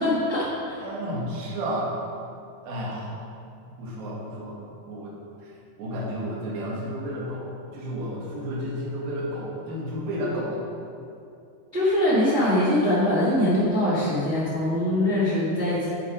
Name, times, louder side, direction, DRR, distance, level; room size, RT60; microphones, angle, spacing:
voice 1, 0.0-0.8 11.7-15.9, left 1 dB, 40° right, -9 dB, 1.0 m, -22 dB
voice 2, 0.8-1.9 2.6-3.1 3.6-4.6 4.9-5.2 5.4-5.5 5.8-10.7, equal, 65° right, -5 dB, 3.3 m, -32 dB
7.9 x 6.9 x 5.0 m, 2.5 s
omnidirectional pair, 4.9 m